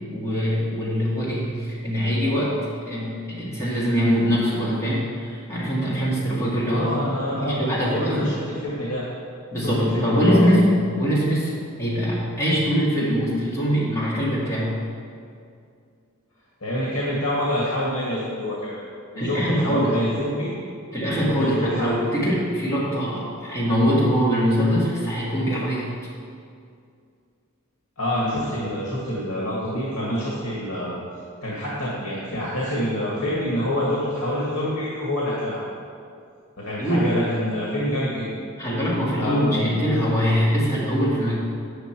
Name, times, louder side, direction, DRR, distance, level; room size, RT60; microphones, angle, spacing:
voice 1, 0.1-7.0 7.4-8.3 9.5-14.8 19.2-20.0 20.9-25.9 36.8-37.2 38.6-41.4, equal, 15° left, -8 dB, 2.0 m, -23 dB
voice 2, 6.7-9.1 9.9-10.5 16.6-18.8 19.1-20.5 21.3-21.9 22.2-22.3 28.0-31.0 31.4-35.6 36.6-38.3 39.2-39.6, left 1 dB, 85° left, -6 dB, 2.0 m, -26 dB
9.6 x 8.1 x 4.5 m, 2.3 s
head